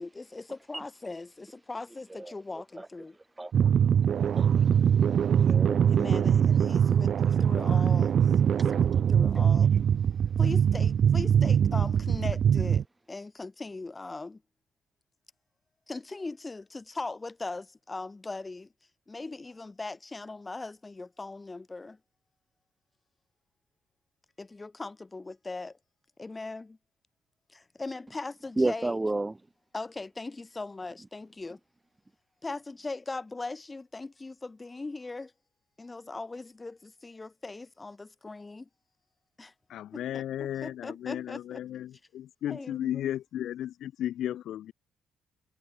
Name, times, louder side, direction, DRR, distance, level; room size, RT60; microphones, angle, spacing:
voice 1, 0.0-3.2 5.9-8.1 8.7-9.7 10.4-14.4 15.9-18.7 19.1-22.0 24.4-25.8 26.2-26.8 27.5-29.0 29.7-31.6 32.4-35.3 35.8-38.7 39.4-39.5 39.9-41.6 42.5-43.1, left 3 dB, 20° left, 3.7 m, -39 dB
voice 2, 3.4-3.7 4.4-4.5 5.4-5.8 28.6-29.4, right 2 dB, 15° right, 0.6 m, -30 dB
sound 1, 3.5-12.8, right 8 dB, 55° right, 0.4 m, -23 dB
voice 3, 39.7-44.7, left 11 dB, 75° left, 0.5 m, -34 dB
cardioid pair, 105°, 0 cm